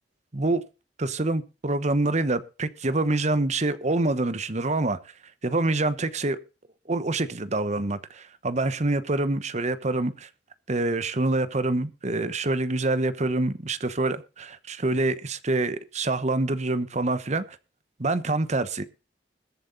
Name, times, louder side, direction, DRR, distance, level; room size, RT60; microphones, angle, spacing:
voice 1, 1.0-5.0 5.4-6.4 6.9-10.3 10.7-17.6 18.0-18.8, right 2 dB, 40° right, 1.1 m, -26 dB
21.0 x 7.9 x 4.0 m
head